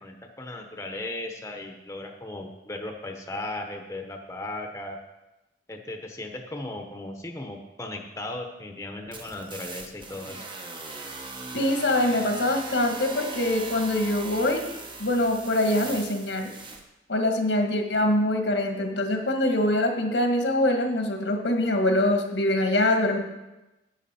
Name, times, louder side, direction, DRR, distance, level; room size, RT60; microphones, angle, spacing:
voice 1, 0.0-5.0 5.7-10.5, left 2 dB, 15° left, 3 dB, 0.9 m, -36 dB
sound 1, 9.1-16.8, right 3 dB, 30° right, 1.0 m, -39 dB
voice 2, 11.5-14.6 15.0-16.5 17.1-23.2, left 1 dB, 85° left, 4 dB, 1.5 m, -24 dB
11.0 x 8.4 x 4.3 m, 1.0 s
head